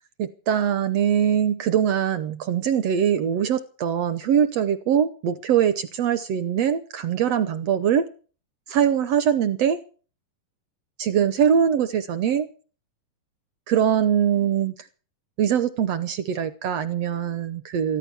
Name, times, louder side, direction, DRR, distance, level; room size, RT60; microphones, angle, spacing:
voice 1, 0.2-8.1 8.7-9.8 11.0-12.5 13.7-14.9 15.4-18.0, right 8 dB, 70° right, 13 dB, 1.6 m, -22 dB
14.5 x 14.0 x 6.9 m, 0.39 s
omnidirectional pair, 3.8 m